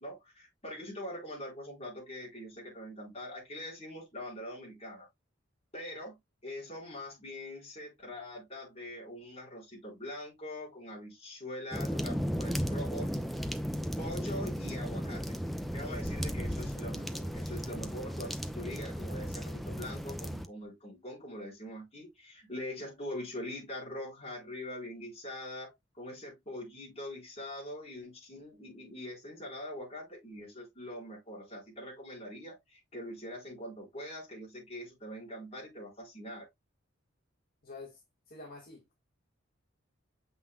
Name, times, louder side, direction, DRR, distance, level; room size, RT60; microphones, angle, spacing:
voice 1, 0.0-5.1 5.7-6.2 6.4-13.1 14.0-15.3 15.7-36.5, left 1 dB, 30° left, 4.4 m, -43 dB
sound 1, 11.7-20.5, equal, ahead, 0.5 m, -35 dB
voice 2, 37.6-38.0 38.3-38.8, left 3 dB, 45° left, 1.9 m, -47 dB
7.2 x 5.8 x 2.3 m
head